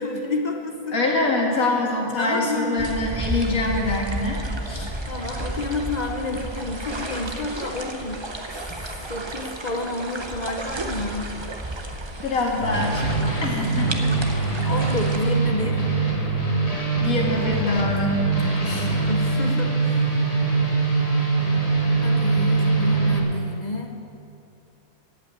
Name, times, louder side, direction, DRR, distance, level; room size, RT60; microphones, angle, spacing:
voice 1, 0.0-1.0 2.2-2.9 5.1-8.6 9.1-11.3 14.6-15.9 18.2-20.3 22.0-23.9, left 2 dB, 40° left, 2 dB, 0.6 m, -30 dB
voice 2, 0.9-4.9 12.2-13.1 13.4-14.0 17.0-18.2 18.6-18.9, left 2 dB, 60° left, -1 dB, 2.3 m, -24 dB
sound 1, 2.8-15.2, right 2 dB, 25° right, 0.6 m, -32 dB
sound 2, 12.6-23.2, right 3 dB, 25° left, 1.6 m, -22 dB
15.0 x 5.8 x 8.9 m, 2.7 s
omnidirectional pair, 1.7 m